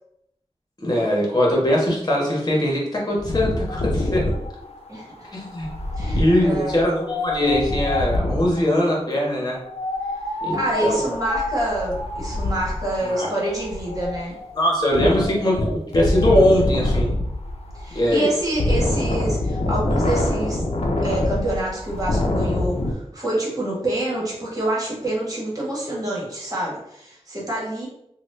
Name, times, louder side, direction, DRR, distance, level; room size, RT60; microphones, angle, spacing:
voice 1, 0.8-4.2 5.3-5.7 6.2-9.6 10.4-11.1 13.0-13.3 14.5-17.1 17.9-18.3, left 1 dB, 40° left, -3 dB, 1.2 m, -21 dB
Wind, 3.2-8.6 9.7-22.9, left 1 dB, 70° left, 0.6 m, -25 dB
voice 2, 6.0-6.9 10.5-14.4 17.7-20.6 21.0-27.9, right 1 dB, 35° right, -5 dB, 1.4 m, -27 dB
3.0 x 2.3 x 3.2 m, 0.77 s
wide cardioid pair, 75°, 11 cm